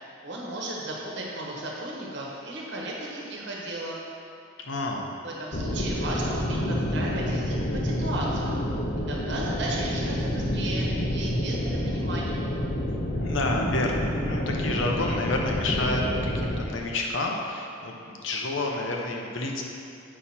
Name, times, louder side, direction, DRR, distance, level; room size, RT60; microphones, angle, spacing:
voice 1, 0.2-4.0 5.2-7.6 7.8-8.6 9.1-12.4, right 1 dB, 60° right, -3 dB, 1.2 m, -35 dB
voice 2, 4.7-5.1 13.2-16.0 16.4-19.6, left 2 dB, 75° left, 0 dB, 0.9 m, -29 dB
sound 1, 5.5-16.6, equal, 45° left, 0.7 m, -28 dB
7.0 x 5.8 x 4.3 m, 2.5 s
head